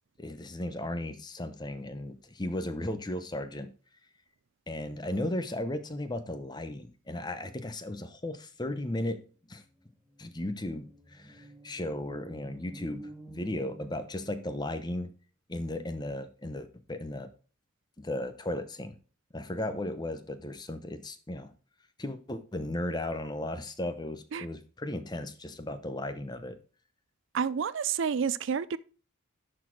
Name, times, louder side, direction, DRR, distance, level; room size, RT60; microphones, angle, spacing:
voice 1, 0.2-3.7 4.7-9.2 9.5-9.6 10.2-15.1 15.5-17.3 18.0-18.9 19.3-21.5 22.0-26.6, left 1 dB, 20° left, 0.7 m, -35 dB
sound 1, 9.3-9.4 9.6-14.7, right 1 dB, 5° right, 1.1 m, -50 dB
voice 2, 27.3-28.8, right 6 dB, 60° right, 0.4 m, -29 dB
11.0 x 4.2 x 4.5 m
head